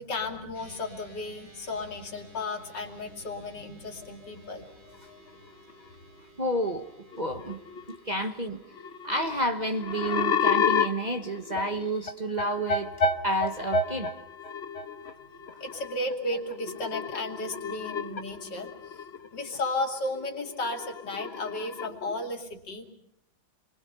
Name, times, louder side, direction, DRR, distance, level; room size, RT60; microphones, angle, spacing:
voice 1, 0.0-4.7 15.6-19.0 19.3-22.9, left 2 dB, 75° left, 3.3 m, -34 dB
sound 1, 0.5-17.8, equal, 80° right, 8.4 m, -57 dB
sound 2, 4.0-4.3 4.9-5.3 5.7-5.9 6.8-6.9 7.1-8.0 8.3-8.4 8.7-19.8 20.1-22.3, left 4 dB, 40° left, 1.3 m, -31 dB
voice 2, 6.4-6.9 7.2-7.6 7.9-8.6 9.0-12.9 13.2-14.1, right 1 dB, 25° right, 1.3 m, -30 dB
29.0 x 23.5 x 5.6 m
omnidirectional pair, 1.9 m